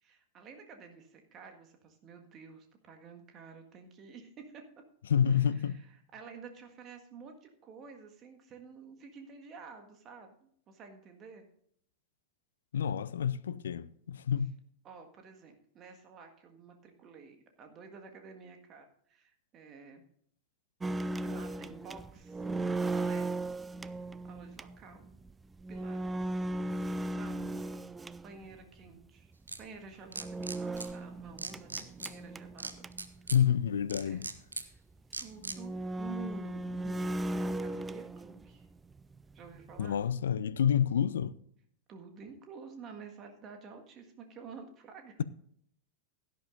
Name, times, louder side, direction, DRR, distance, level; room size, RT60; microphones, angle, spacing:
voice 1, 0.0-4.6 5.3-10.3 10.7-11.5 14.8-20.0 21.2-22.4 22.9-23.3 23.8-25.1 25.7-26.4 27.0-27.7 28.2-29.3 29.6-32.8 33.2-33.3 34.0-34.3 34.7-34.8 35.2-38.7 39.3-40.0 41.9-45.2, right 5 dB, 30° right, 1.7 m, -50 dB
voice 2, 5.1-5.8 12.7-14.5 33.3-34.3 39.8-41.4, left 8 dB, 65° left, 0.4 m, -28 dB
sound 1, 20.8-28.6 30.1-33.2 33.5-33.6 33.9-34.0 34.8-34.9 35.4-38.6 38.9-40.1, right 2 dB, 15° right, 0.4 m, -37 dB
sound 2, 29.5-29.6 30.1-30.9 31.4-32.1 32.6-33.4 33.9-34.6 35.1-35.6, right 3 dB, 80° right, 0.8 m, -38 dB
16.5 x 10.5 x 2.6 m
figure-of-eight pair, 90°, 0 cm